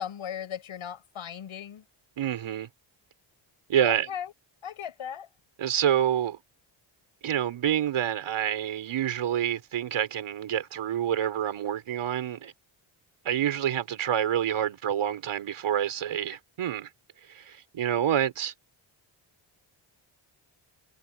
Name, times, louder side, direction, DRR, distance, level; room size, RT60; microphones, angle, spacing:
voice 1, 0.0-1.8 3.8-4.3 4.6-5.3, left 8 dB, 75° left, 7.5 m, -37 dB
voice 2, 2.2-2.7 3.7-4.1 5.6-6.4 7.2-12.5 13.2-16.9 17.3-18.5, right 10 dB, 80° right, 5.5 m, -27 dB
cardioid pair, 75°, 49 cm